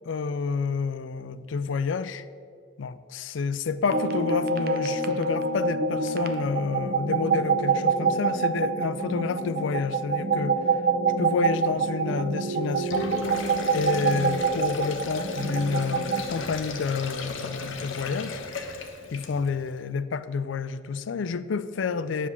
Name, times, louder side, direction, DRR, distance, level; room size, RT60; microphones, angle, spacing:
voice 1, 0.0-2.2 2.8-10.6 11.2-13.1 13.7-18.4 19.1-22.3, left 5 dB, 70° left, 15 dB, 0.4 m, -29 dB
sound 1, 3.9-16.2, right 4 dB, 50° right, 0.7 m, -26 dB
Sink (filling or washing), 12.7-19.6, left 3 dB, 85° left, 1.0 m, -36 dB
9.9 x 5.0 x 6.9 m, 2.2 s
head